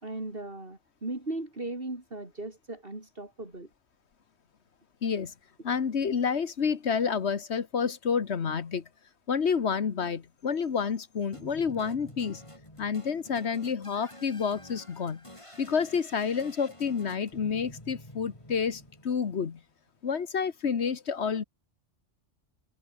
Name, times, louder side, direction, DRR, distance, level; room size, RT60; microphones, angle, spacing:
voice 1, 0.0-3.7, right 2 dB, 50° right, 4.8 m, -37 dB
voice 2, 5.0-5.3 5.6-8.9 9.3-12.4 12.8-15.2 15.6-19.6 20.0-21.4, left 6 dB, 65° left, 1.5 m, -29 dB
sound 1, 11.3-19.6, left 1 dB, 25° left, 6.9 m, -49 dB
omnidirectional pair, 1.3 m